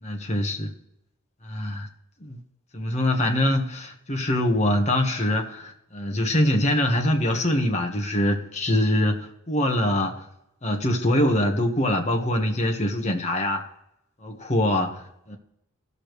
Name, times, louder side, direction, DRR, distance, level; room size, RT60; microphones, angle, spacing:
voice 1, 0.0-0.7 1.4-1.9 2.2-2.4 2.7-10.2 10.6-13.6 14.2-15.4, left 1 dB, 30° left, 2 dB, 1.2 m, -24 dB
16.5 x 6.7 x 3.1 m, 0.80 s
head